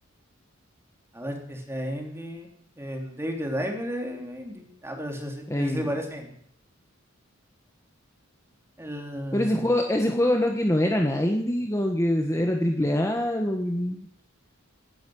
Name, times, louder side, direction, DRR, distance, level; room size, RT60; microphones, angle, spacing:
voice 1, 1.1-2.5 2.8-6.3 8.8-9.7, equal, 15° right, 2 dB, 3.2 m, -33 dB
voice 2, 5.5-6.0 9.3-14.0, left 1 dB, 15° left, 2 dB, 1.4 m, -24 dB
18.0 x 10.5 x 7.8 m, 0.67 s
head